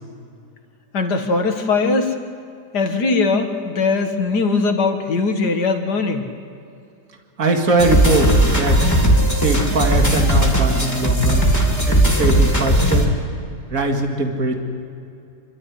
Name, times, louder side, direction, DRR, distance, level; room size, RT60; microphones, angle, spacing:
voice 1, 0.9-2.2 2.7-6.3, left 4 dB, 70° left, 5 dB, 2.2 m, -20 dB
voice 2, 7.4-8.8 9.3-11.5 11.9-13.1 13.7-14.6, right 2 dB, 55° right, 3 dB, 2.5 m, -21 dB
sound 1, 7.8-13.0, right 1 dB, 10° left, 3.3 m, -17 dB
27.0 x 13.0 x 10.0 m, 2.6 s
omnidirectional pair, 1.8 m